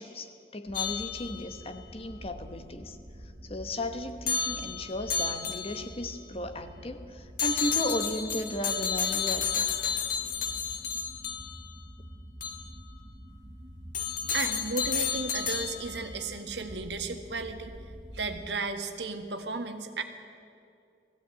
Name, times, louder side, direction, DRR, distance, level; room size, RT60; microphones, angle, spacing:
voice 1, 0.0-3.0 3.2-9.7, left 1 dB, 35° left, 8 dB, 1.2 m, -35 dB
sound 1, 0.7-1.7 4.3-6.0 7.4-11.7 12.4-12.6 13.9-16.1, left 6 dB, 50° left, 1.7 m, -31 dB
sound 2, 0.7-18.5, equal, 30° right, 1.1 m, -47 dB
voice 2, 14.3-17.7 18.1-20.0, right 4 dB, 80° right, 6 dB, 1.7 m, -34 dB
19.5 x 15.5 x 9.1 m, 2.4 s
head